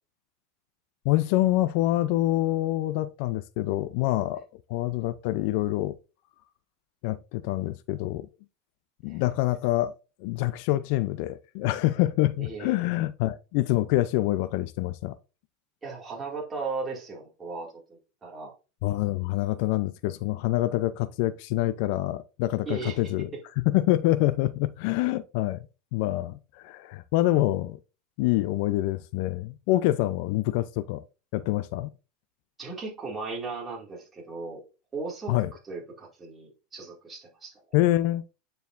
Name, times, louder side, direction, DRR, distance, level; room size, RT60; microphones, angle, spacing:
voice 1, 1.0-6.0 7.0-8.3 9.0-9.9 10.2-15.2 18.8-23.3 23.6-25.7 25.9-27.8 28.2-31.0 31.3-31.9 35.3-35.5 37.7-38.2, left 16 dB, 60° left, 0.4 m, -26 dB
voice 2, 12.4-12.8 15.8-18.5 22.7-23.1 32.6-34.6 34.9-35.4 35.6-37.5, right 4 dB, 15° right, 2.2 m, -37 dB
9.3 x 4.6 x 2.5 m
supercardioid pair, 140°, 0 cm